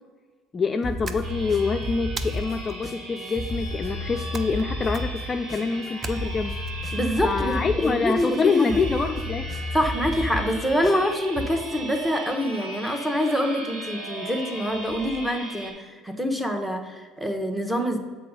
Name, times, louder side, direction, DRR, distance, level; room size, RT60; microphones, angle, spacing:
voice 1, 0.5-6.6 7.2-9.5, left 4 dB, 30° left, 6 dB, 0.4 m, -26 dB
sound 1, 0.8-11.5, left 1 dB, 15° left, 1.5 m, -32 dB
sound 2, 1.0-1.6 2.2-2.8 4.3-4.7 4.9-5.3 6.0-6.7, right 4 dB, 35° right, 0.6 m, -38 dB
sound 3, 1.2-15.7, right 2 dB, 65° right, 1.9 m, -38 dB
voice 2, 6.9-8.8 9.7-18.0, equal, 5° right, 4 dB, 1.0 m, -26 dB
6.7 x 4.0 x 5.2 m, 1.5 s
hypercardioid pair, 75°, 0 cm